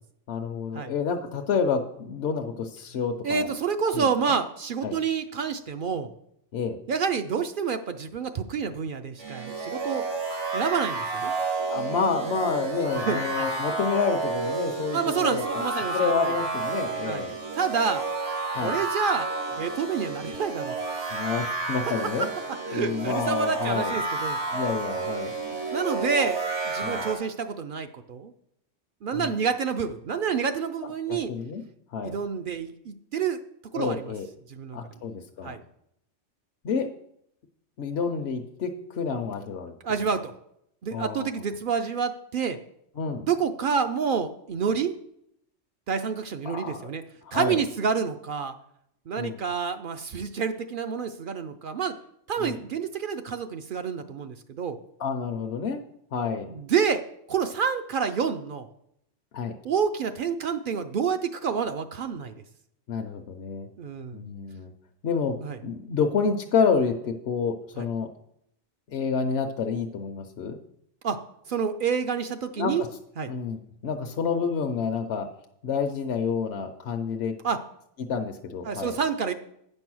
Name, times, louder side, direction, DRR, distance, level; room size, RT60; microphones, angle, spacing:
voice 1, 0.3-3.5 3.9-4.1 4.8-5.0 6.5-6.8 11.7-15.7 15.9-17.3 18.5-18.8 21.1-22.3 22.7-23.9 24.5-25.3 26.8-27.0 29.1-29.3 31.1-31.6 31.9-32.2 33.7-34.3 34.7-35.6 36.6-36.9 37.8-39.7 40.9-41.3 43.0-43.2 46.4-46.9 47.3-47.6 49.2-49.4 52.4-52.6 55.0-55.8 56.1-56.5 59.3-59.5 62.9-63.7 64.1-64.7 65.0-65.3 65.6-68.1 68.9-70.6 72.6-72.9 73.3-75.3 75.6-77.3 78.1-79.0, left 5 dB, 65° left, 4 dB, 0.9 m, -29 dB
voice 2, 3.2-6.1 6.9-10.0 10.5-11.3 12.9-13.5 14.9-16.1 17.0-17.2 17.5-18.0 18.6-19.3 19.6-20.7 21.8-22.3 22.7-24.7 25.7-26.4 26.7-28.3 29.0-31.3 32.0-33.4 33.7-34.1 34.5-34.8 35.4-35.6 39.8-40.3 40.8-42.6 43.2-44.9 45.9-47.0 47.3-48.5 49.1-51.9 52.3-54.8 56.5-57.0 57.3-58.7 59.6-62.3 63.8-64.2 65.4-65.6 67.8-67.9 71.0-71.2 71.5-72.9 73.2-73.3 77.4-77.6 78.6-79.3, right 6 dB, 60° right, 8 dB, 0.6 m, -28 dB
sound 1, 9.2-27.1, right 3 dB, 80° right, 2.2 m, -31 dB
9.0 x 5.4 x 6.1 m, 0.74 s
omnidirectional pair, 1.2 m